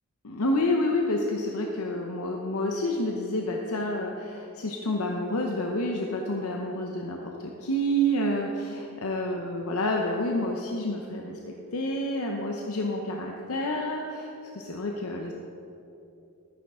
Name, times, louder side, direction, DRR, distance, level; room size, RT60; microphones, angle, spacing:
voice 1, 0.2-15.3, left 1 dB, 90° left, 1 dB, 0.8 m, -29 dB
13.0 x 9.8 x 3.7 m, 2.8 s
head